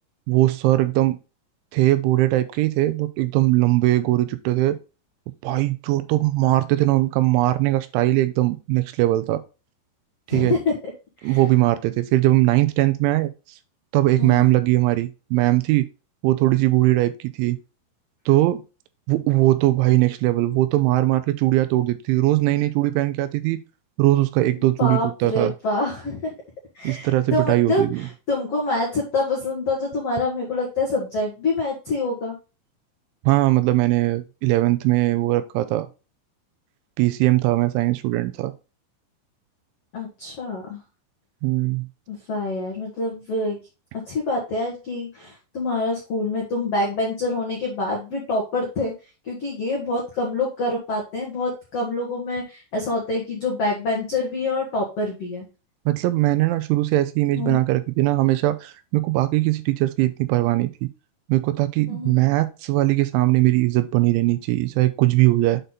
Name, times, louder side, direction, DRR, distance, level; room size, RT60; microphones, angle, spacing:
voice 1, 0.3-1.2 1.7-4.8 5.4-9.4 10.3-10.5 11.2-13.3 13.9-15.9 16.2-17.6 18.3-18.6 19.1-23.6 24.0-25.5 26.8-28.1 33.2-35.9 37.0-38.5 41.4-41.9 55.9-60.9 61.3-65.6, right 17 dB, 85° right, 2.9 m, -20 dB
voice 2, 10.3-10.8 11.2-11.4 14.2-14.5 24.8-26.3 26.7-32.3 39.9-40.8 42.1-43.6 44.0-48.9 49.2-55.4 57.3-57.6 61.9-62.1, left 2 dB, 80° left, 1.3 m, -26 dB
8.0 x 4.1 x 3.8 m
omnidirectional pair, 5.6 m